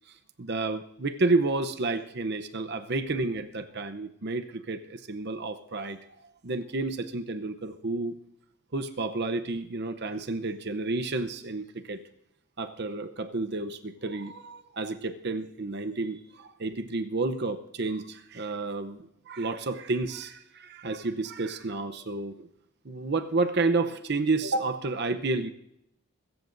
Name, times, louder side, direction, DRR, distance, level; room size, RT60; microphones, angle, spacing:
voice 1, 0.4-6.0 6.4-8.2 8.7-12.0 12.6-22.5 22.8-25.5, right 3 dB, 50° right, 8 dB, 0.7 m, -30 dB
23.0 x 14.0 x 2.6 m, 0.79 s
head